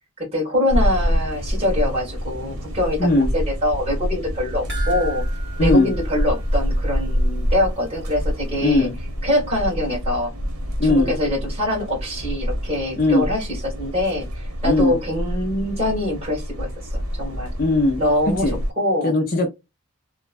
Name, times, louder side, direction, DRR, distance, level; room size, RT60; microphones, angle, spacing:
voice 1, 0.2-5.2 5.6-8.9 9.2-10.3 10.8-17.5 18.0-19.1, left 1 dB, 30° right, 1.6 m, -24 dB
sound 1, 0.7-18.7, equal, 90° right, 1.0 m, -26 dB
sound 2, 4.7-7.2 7.5-7.6 8.1-8.2, right 5 dB, 50° right, 1.4 m, -37 dB
voice 2, 5.6-5.9 8.6-8.9 10.8-11.1 13.0-13.3 14.6-15.0 17.6-18.0 18.4-18.6 19.0-19.5, left 2 dB, 40° left, 0.5 m, -18 dB
3.0 x 2.2 x 2.5 m
head